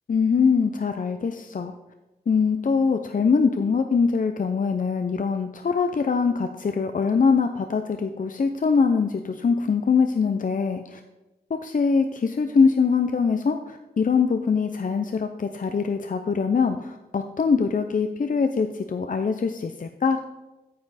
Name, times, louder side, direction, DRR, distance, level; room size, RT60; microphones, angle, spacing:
voice 1, 0.1-1.7 2.3-11.0 11.5-20.2, left 5 dB, 50° left, 7 dB, 0.5 m, -23 dB
9.4 x 7.5 x 4.1 m, 1.1 s
wide cardioid pair, 70°, 17 cm